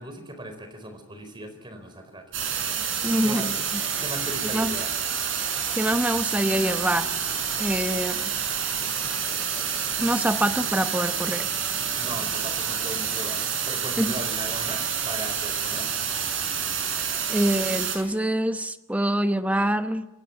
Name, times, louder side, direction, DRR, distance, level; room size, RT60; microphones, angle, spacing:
voice 1, 0.0-2.3 3.2-3.5 4.0-4.9 12.0-15.9, right 1 dB, 25° right, 8 dB, 4.4 m, -38 dB
sound 1, 2.3-18.0, right 7 dB, 70° right, 6.5 m, -28 dB
voice 2, 3.0-3.8 4.5-4.7 5.7-7.2 7.6-8.3 10.0-11.5 14.0-14.1 17.3-20.1, right 1 dB, 5° right, 9 dB, 1.0 m, -25 dB
27.5 x 16.5 x 8.4 m, 1.0 s
head